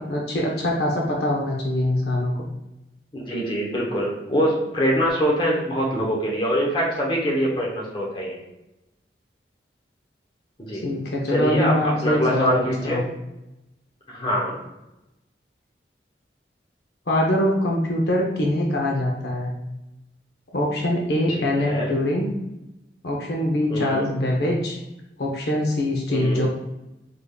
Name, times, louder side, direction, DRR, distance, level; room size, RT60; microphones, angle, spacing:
voice 1, 0.1-2.3 10.7-13.0 17.1-19.5 20.5-22.3 23.0-24.8 25.2-26.5, left 1 dB, 65° left, -1 dB, 0.6 m, -23 dB
voice 2, 3.1-8.4 10.6-10.9 11.3-13.0 14.1-14.5 21.4-21.9 23.7-24.1 26.1-26.5, equal, 30° left, -3 dB, 0.8 m, -24 dB
3.5 x 3.4 x 2.3 m, 0.92 s
head